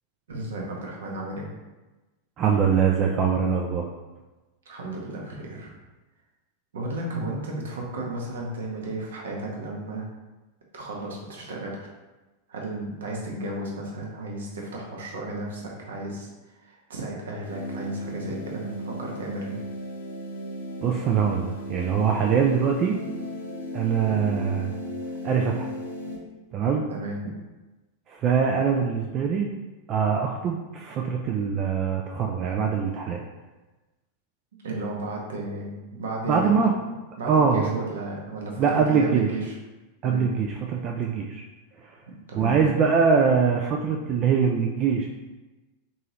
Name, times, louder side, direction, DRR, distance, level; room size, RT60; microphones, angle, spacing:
voice 1, 0.3-1.5 4.7-5.8 6.7-10.1 10.7-11.9 12.5-16.3 16.6-19.5 24.1-24.3 26.9-27.2 34.6-36.5 37.2-39.5 40.0-40.2 42.3-42.5, right 2 dB, 65° right, -1 dB, 0.8 m, -33 dB
voice 2, 2.4-3.9 20.8-23.0 23.7-24.8 25.2-25.7 26.5-26.8 28.1-29.5 29.9-33.2 36.3-36.7 37.2-37.8 38.6-39.3 40.0-41.4 41.8-41.9 42.3-45.1, right 6 dB, 35° right, 1 dB, 0.3 m, -23 dB
sound 1, 17.4-26.2, equal, 70° left, 0.7 m, -35 dB
3.6 x 2.8 x 3.0 m, 1.1 s
figure-of-eight pair, 90°, 0 cm